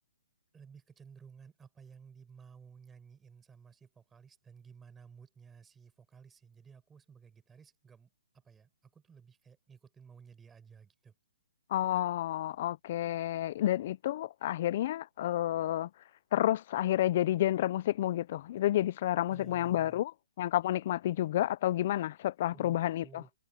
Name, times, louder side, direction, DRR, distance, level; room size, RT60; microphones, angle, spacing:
voice 1, 0.5-11.1 19.3-20.0 22.5-23.3, right 6 dB, 5° right, 6.0 m, -55 dB
voice 2, 11.7-15.9 16.3-20.1 20.4-23.2, left 13 dB, 30° left, 0.3 m, -30 dB
hypercardioid pair, 180°, 0 cm